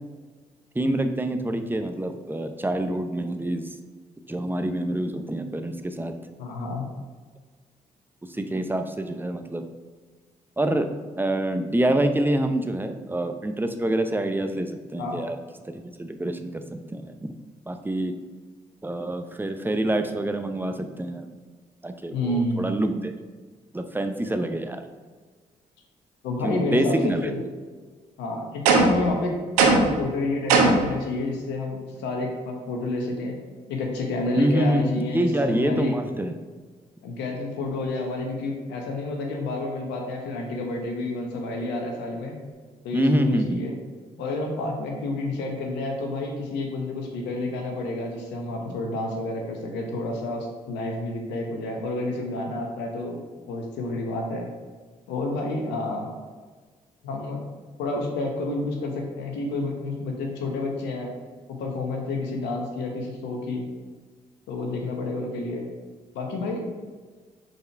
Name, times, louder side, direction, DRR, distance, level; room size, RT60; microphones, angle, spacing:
voice 1, 0.7-3.7 4.3-6.2 8.3-9.6 10.6-10.9 11.2-15.4 15.7-17.1 17.7-18.1 18.8-21.3 21.8-23.1 23.7-24.8 26.4-27.3 34.4-36.4 42.9-43.6, right 1 dB, 10° right, 7 dB, 0.7 m, -26 dB
voice 2, 6.4-6.9 15.0-15.2 22.1-22.7 26.2-27.4 28.2-29.3 29.6-33.4 33.7-36.0 37.0-42.3 42.8-43.7 44.2-53.2 53.5-54.5 55.1-56.1 57.0-57.5 57.8-61.1 61.6-63.7 64.5-65.7 66.1-66.6, left 2 dB, 75° left, 1 dB, 1.1 m, -29 dB
sound 1, 28.7-29.1 29.6-30.0 30.5-30.9, right 3 dB, 85° right, 0.6 m, -18 dB
5.4 x 4.4 x 4.5 m, 1.4 s
hypercardioid pair, 40°, 18 cm